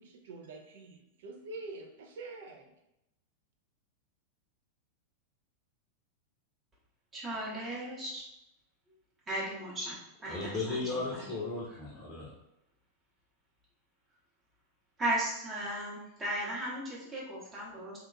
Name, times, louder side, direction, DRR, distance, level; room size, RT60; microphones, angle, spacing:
voice 1, 0.0-2.7, right 3 dB, 60° right, 2 dB, 0.4 m, -46 dB
voice 2, 7.1-8.3 9.3-11.3 15.0-18.0, right 1 dB, 20° right, -6 dB, 0.8 m, -36 dB
voice 3, 10.3-12.3, left 3 dB, 35° left, -4 dB, 0.6 m, -36 dB
2.8 x 2.2 x 2.4 m, 0.84 s
figure-of-eight pair, 90°, 0 cm